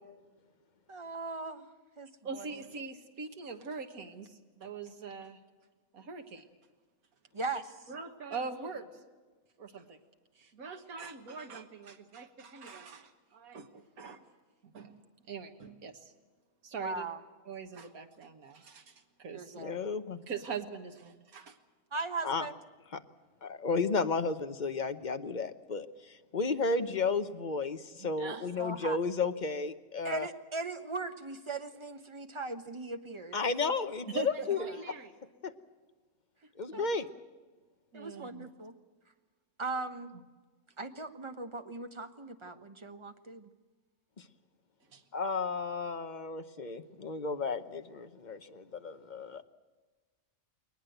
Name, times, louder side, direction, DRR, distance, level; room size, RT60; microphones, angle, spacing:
voice 1, 0.9-1.7 2.0-2.6 7.3-7.8 16.8-17.2 19.3-19.8 21.9-22.6 28.3-29.0 30.0-33.4 36.7-36.8 37.9-38.7 39.6-40.2 40.8-43.5, right 3 dB, 20° right, 8 dB, 1.1 m, -39 dB
voice 2, 2.2-5.4 5.9-6.4 7.9-9.0 9.6-10.0 10.4-14.2 14.6-15.0 15.3-16.1 16.6-17.0 17.5-19.5 20.3-21.6 28.0-28.5 34.1-35.1 36.7-36.8 37.9-38.5 44.9-45.0, right 5 dB, 90° right, 5 dB, 1.8 m, -42 dB
voice 3, 19.6-20.2 22.2-22.4 22.9-23.0 23.4-30.3 33.3-34.6 35.4-35.5 36.6-37.1 45.1-49.4, left 4 dB, 35° left, 9 dB, 0.9 m, -33 dB
21.0 x 20.0 x 7.9 m, 1.3 s
omnidirectional pair, 1.5 m